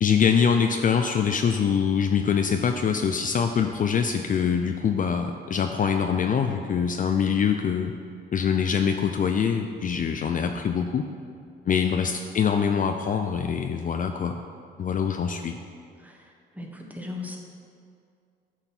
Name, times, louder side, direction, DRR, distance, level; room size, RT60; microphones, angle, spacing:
voice 1, 0.0-7.9 8.3-11.1 11.7-14.3 14.8-15.6, left 7 dB, 40° left, 6 dB, 0.5 m, -24 dB
voice 2, 4.4-4.7 16.0-16.2 16.5-17.4, left 3 dB, 10° right, 0 dB, 1.3 m, -37 dB
9.1 x 5.7 x 4.5 m, 2.3 s
cardioid pair, 90°, 20 cm